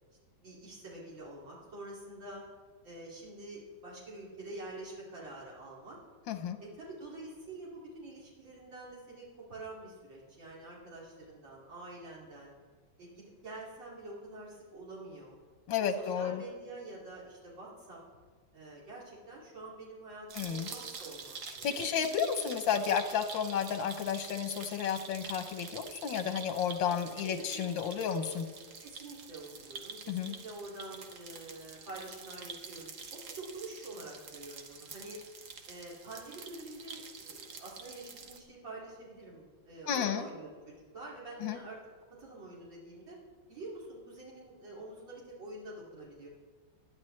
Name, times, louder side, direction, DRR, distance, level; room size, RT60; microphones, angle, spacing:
voice 1, 0.4-2.4 2.8-6.0 6.6-12.5 13.0-15.4 15.8-18.0 18.5-21.8 27.2-27.8 28.8-35.2 35.7-41.8 42.2-43.2 43.5-46.3, right 2 dB, 85° right, -5 dB, 3.4 m, -47 dB
voice 2, 6.3-6.6 15.7-16.4 20.4-20.7 21.6-28.5 30.1-30.3 39.9-40.2 41.4-41.6, left 8 dB, 85° left, 8 dB, 1.6 m, -32 dB
sound 1, 20.3-38.4, right 5 dB, 65° right, 1.6 m, -47 dB
20.0 x 11.5 x 3.3 m, 1.5 s
omnidirectional pair, 2.0 m